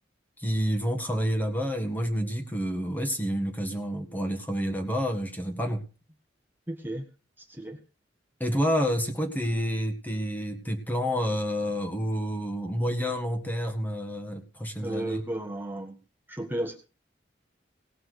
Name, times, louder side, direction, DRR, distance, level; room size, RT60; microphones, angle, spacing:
voice 1, 0.4-5.8 8.4-15.2, equal, 10° left, 5 dB, 1.8 m, -29 dB
voice 2, 6.7-7.0 7.4-7.8 14.8-16.0 16.3-16.8, right 1 dB, 10° right, 1 dB, 1.5 m, -33 dB
18.0 x 6.1 x 6.4 m, 0.35 s
head